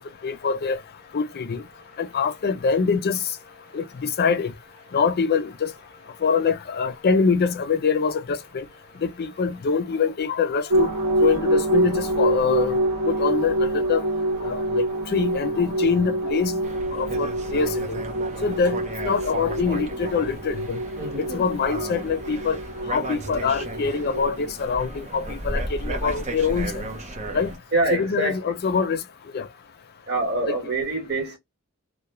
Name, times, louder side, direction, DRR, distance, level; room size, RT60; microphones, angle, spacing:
voice 1, 0.2-0.8 1.1-1.6 2.0-3.2 3.7-4.5 4.9-5.7 6.2-8.6 9.0-10.9 11.2-12.8 13.1-14.0 14.4-14.8 15.1-16.6 16.9-18.0 18.4-20.8 21.2-22.6 22.9-26.8 27.3-27.5 27.9-29.0 29.3-29.5, left 5 dB, 45° left, 0.4 m, -24 dB
voice 2, 1.5-2.2 3.6-4.2 4.8-5.0 6.1-6.2 8.7-9.0 21.0-21.4 27.1-27.4 27.7-28.5 30.1-31.4, right 2 dB, 45° right, 1.2 m, -28 dB
sound 1, 10.7-24.5, right 1 dB, 80° right, 0.7 m, -26 dB
sound 2, 16.6-27.6, right 2 dB, 30° right, 0.6 m, -34 dB
2.2 x 2.1 x 2.9 m
head